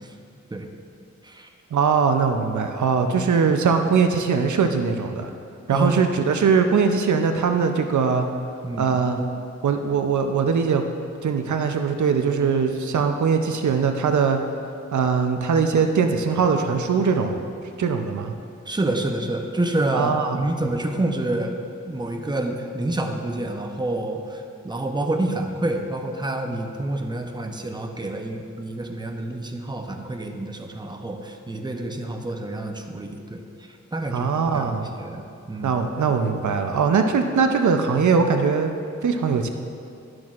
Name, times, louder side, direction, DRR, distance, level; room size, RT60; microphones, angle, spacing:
voice 1, 1.7-5.3 5.7-8.3 8.8-9.3 9.6-10.8 11.2-14.4 14.9-17.4 17.8-18.4 19.9-20.4 34.1-34.9 35.6-38.7 39.0-39.5, right 5 dB, 80° right, 5 dB, 0.5 m, -21 dB
voice 2, 5.7-6.2 8.6-9.0 18.7-21.6 21.9-33.4 33.9-35.7, right 1 dB, 15° right, 3 dB, 0.7 m, -28 dB
12.0 x 6.1 x 2.5 m, 2.6 s
cardioid pair, 60°, 29 cm